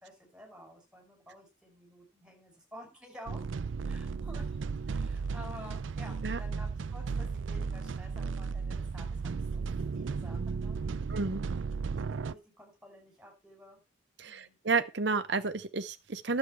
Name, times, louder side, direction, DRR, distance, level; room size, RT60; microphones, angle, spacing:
voice 1, 0.0-3.4 3.9-9.6 9.9-11.1 12.2-13.8 14.2-14.6, equal, 5° right, 5.6 m, -51 dB
sound 1, 3.3-12.3, right 5 dB, 85° right, 0.5 m, -35 dB
voice 2, 11.1-11.4 14.2-16.4, right 4 dB, 65° right, 0.8 m, -31 dB
11.0 x 8.0 x 4.6 m
head